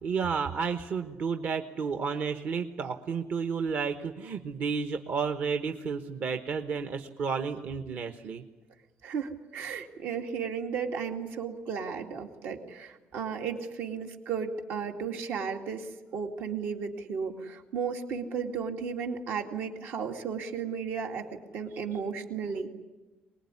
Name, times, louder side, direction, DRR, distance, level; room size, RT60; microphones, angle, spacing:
voice 1, 0.0-8.4, right 5 dB, 55° right, 7 dB, 1.2 m, -31 dB
voice 2, 9.0-21.3 21.5-22.7, right 6 dB, 75° right, 3 dB, 2.3 m, -34 dB
24.0 x 21.0 x 9.7 m, 1.2 s
cardioid pair, 130°, 4 cm